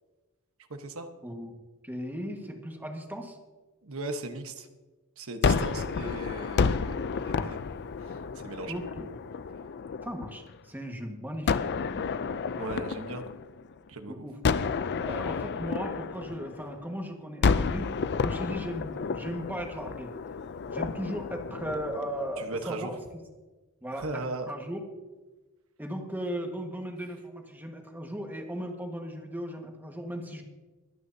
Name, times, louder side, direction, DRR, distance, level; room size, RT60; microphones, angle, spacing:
voice 1, 0.7-1.1 3.8-4.7 5.2-7.0 7.2-7.6 8.0-8.7 12.6-13.2 13.9-14.1 22.4-22.9 23.9-24.5, right 2 dB, 65° right, 6 dB, 1.2 m, -37 dB
voice 2, 1.8-3.4 8.7-9.1 10.0-12.1 14.1-14.4 15.0-17.9 18.2-20.2 20.7-23.0 23.8-24.8 25.8-30.4, equal, 10° right, 2 dB, 1.6 m, -37 dB
Gunshot gunfire, 5.4-10.5 11.5-13.9 14.4-16.9 17.4-22.6, left 5 dB, 50° left, 0.4 m, -31 dB
24.0 x 9.5 x 2.8 m, 1.2 s
head